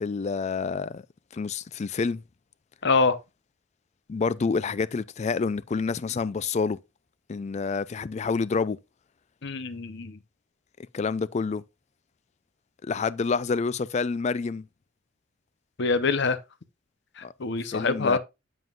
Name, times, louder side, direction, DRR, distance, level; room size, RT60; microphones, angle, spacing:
voice 1, 0.0-1.0 1.3-2.2 4.1-6.8 7.3-8.8 10.9-11.6 12.8-14.6 17.2-17.3 17.7-18.2, left 4 dB, 35° left, 0.3 m, -28 dB
voice 2, 2.8-3.2 9.4-10.2 15.8-16.4 17.2-18.2, left 4 dB, 60° left, 0.7 m, -25 dB
7.7 x 7.2 x 2.4 m
head